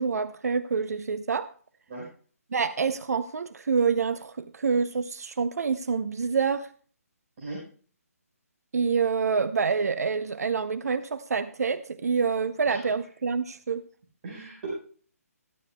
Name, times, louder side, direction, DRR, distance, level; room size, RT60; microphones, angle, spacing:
voice 1, 0.0-1.5 2.5-6.7 8.7-13.8, right 5 dB, 75° right, 0.6 m, -27 dB
voice 2, 14.2-14.7, right 3 dB, 45° right, 4.6 m, -38 dB
14.0 x 12.0 x 2.2 m
hypercardioid pair, 155°, 8 cm